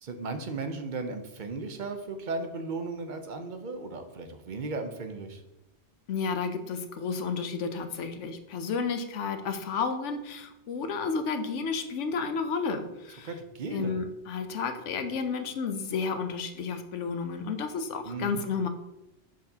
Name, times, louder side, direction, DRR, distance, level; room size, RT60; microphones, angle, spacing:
voice 1, 0.0-5.4 13.2-14.0 18.0-18.4, right 3 dB, 50° right, 7 dB, 0.7 m, -36 dB
voice 2, 6.1-13.3 13.7-18.7, left 5 dB, 80° left, 7 dB, 1.0 m, -32 dB
6.7 x 5.9 x 2.8 m, 0.92 s
omnidirectional pair, 1.2 m